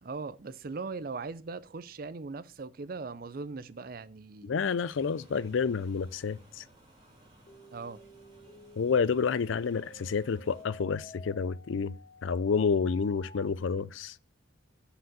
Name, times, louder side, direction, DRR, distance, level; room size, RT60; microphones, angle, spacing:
voice 1, 0.0-4.5 7.7-8.0, right 4 dB, 45° right, 0.5 m, -39 dB
voice 2, 4.4-6.6 8.8-11.9 12.2-14.1, left 5 dB, 75° left, 0.4 m, -29 dB
sound 1, 4.9-10.6, right 1 dB, 20° right, 2.6 m, -58 dB
sound 2, 7.5-13.5, left 2 dB, 35° left, 0.9 m, -51 dB
6.2 x 4.9 x 6.6 m
head